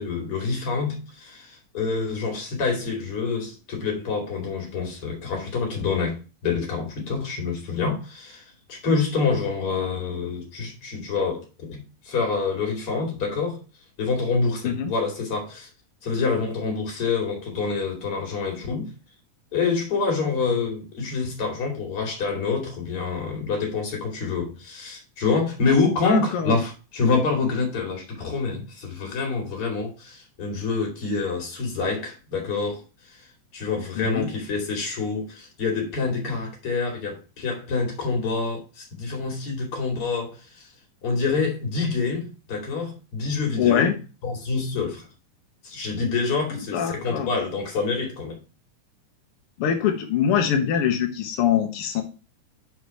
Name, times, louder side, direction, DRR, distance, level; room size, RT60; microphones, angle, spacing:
voice 1, 0.0-13.6 14.0-15.7 16.0-18.9 19.5-40.7 41.0-43.9 44.2-45.1 45.6-48.4, left 4 dB, 45° left, 3.1 m, -27 dB
voice 2, 26.0-26.6 34.0-34.3 43.6-43.9 46.7-47.3 49.6-52.0, left 8 dB, 75° left, 1.3 m, -23 dB
6.3 x 4.7 x 5.7 m
omnidirectional pair, 3.9 m